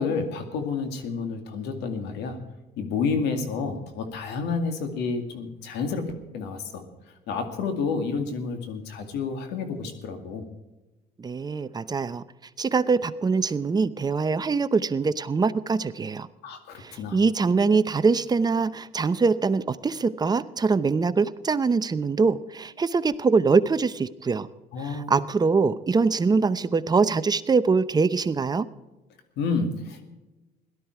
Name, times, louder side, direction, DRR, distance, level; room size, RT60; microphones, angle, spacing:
voice 1, 0.0-2.4 2.8-6.8 7.3-10.4 16.4-17.2 24.7-25.2 29.4-30.1, left 4 dB, 85° left, 7 dB, 2.3 m, -30 dB
voice 2, 11.2-12.2 12.6-16.3 16.8-24.5 24.8-28.7, right 4 dB, 25° right, 13 dB, 0.7 m, -23 dB
17.5 x 12.0 x 4.6 m, 1.1 s
cardioid pair, 110°, 17 cm